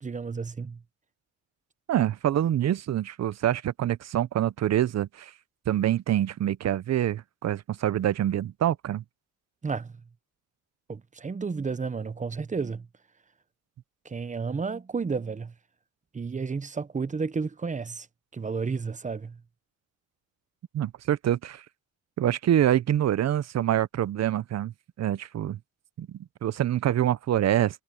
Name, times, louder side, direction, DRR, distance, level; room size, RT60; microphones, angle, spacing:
voice 1, 0.0-0.8 9.6-10.0 10.9-12.9 14.0-15.5 16.1-18.1 18.3-19.4, right 5 dB, 20° right, 0.9 m, -32 dB
voice 2, 1.9-5.3 5.7-9.0 20.7-21.6 22.2-25.6 26.0-27.8, right 11 dB, 50° right, 0.7 m, -26 dB
cardioid pair, 100°, 33 cm